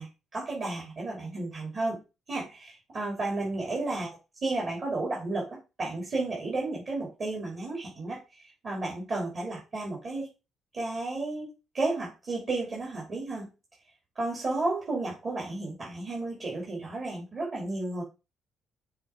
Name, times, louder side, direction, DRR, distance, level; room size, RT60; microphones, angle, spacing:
voice 1, 0.0-2.0 2.3-8.2 8.6-10.3 10.7-13.5 14.1-18.0, right 2 dB, 45° right, -3 dB, 3.3 m, -32 dB
6.8 x 3.6 x 4.6 m, 0.28 s
cardioid pair, 85°, 0 cm